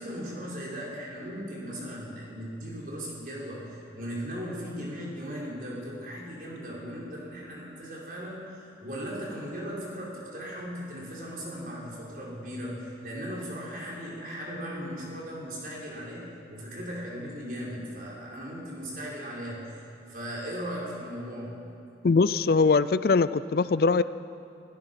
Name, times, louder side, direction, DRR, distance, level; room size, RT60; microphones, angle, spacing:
voice 1, 0.0-19.6 20.1-21.6, equal, 50° right, -4 dB, 5.5 m, -37 dB
voice 2, 22.0-24.0, left 4 dB, 55° left, 16 dB, 0.4 m, -22 dB
28.0 x 16.5 x 5.9 m, 2.6 s
head